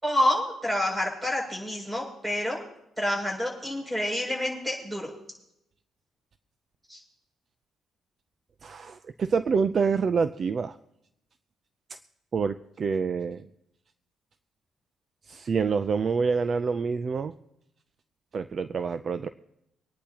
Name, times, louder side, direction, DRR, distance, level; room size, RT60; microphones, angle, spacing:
voice 1, 0.0-2.6 3.0-5.1 6.9-7.0, left 1 dB, 15° right, -1 dB, 6.7 m, -28 dB
voice 2, 8.6-10.8 12.3-13.5 15.3-17.3 18.3-19.3, right 5 dB, 45° right, 11 dB, 0.5 m, -27 dB
24.5 x 10.0 x 2.9 m, 0.81 s
cardioid pair, 90°, 0 cm